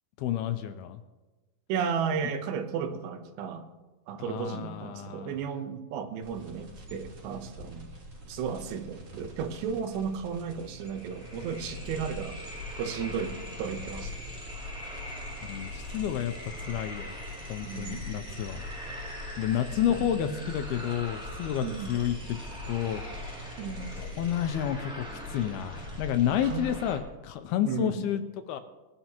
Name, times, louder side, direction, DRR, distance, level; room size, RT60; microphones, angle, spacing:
voice 1, 0.2-1.0 4.2-5.4 15.4-17.1 17.5-18.6 19.4-22.4 22.7-23.0 24.0-28.2 28.5-28.6, left 10 dB, 85° left, 8 dB, 2.3 m, -30 dB
voice 2, 1.7-3.7 4.1-7.9 8.3-12.4 12.8-14.1 17.6-18.1 19.9-20.5 21.6-21.9 23.6-24.0 26.4-26.7 27.6-28.1, right 7 dB, 80° right, 7 dB, 3.1 m, -34 dB
sound 1, 6.2-24.5, equal, 40° right, 3.2 m, -47 dB
sound 2, 10.0-10.1 10.3-27.0, left 1 dB, 5° right, 1.1 m, -40 dB
21.5 x 11.0 x 3.0 m, 1.2 s
omnidirectional pair, 5.0 m